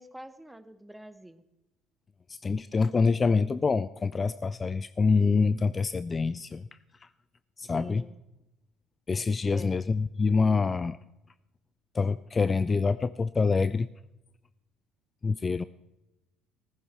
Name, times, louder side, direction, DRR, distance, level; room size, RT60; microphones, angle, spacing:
voice 1, 0.0-1.4 7.6-8.2 9.5-9.8, right 1 dB, 5° right, 13 dB, 1.1 m, -46 dB
voice 2, 2.3-6.7 7.0-7.1 7.6-8.0 9.1-11.0 11.9-13.9 15.2-15.6, left 4 dB, 30° left, 16 dB, 0.4 m, -26 dB
15.0 x 14.5 x 4.2 m, 0.94 s
figure-of-eight pair, 55°, 0 cm